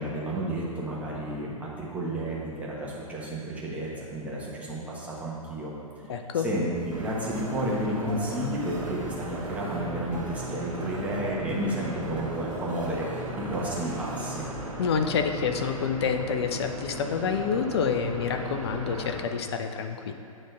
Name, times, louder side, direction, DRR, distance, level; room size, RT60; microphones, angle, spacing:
voice 1, 0.0-5.7 6.1-14.4, right 1 dB, 10° right, -6 dB, 1.2 m, -32 dB
voice 2, 6.1-6.5 14.8-20.1, left 6 dB, 45° left, 6 dB, 0.6 m, -28 dB
sound 1, 6.7-14.4, right 2 dB, 25° right, 1.1 m, -43 dB
sound 2, 6.9-19.2, right 1 dB, 75° right, 1.6 m, -37 dB
8.8 x 3.3 x 5.7 m, 2.8 s
figure-of-eight pair, 115°, 18 cm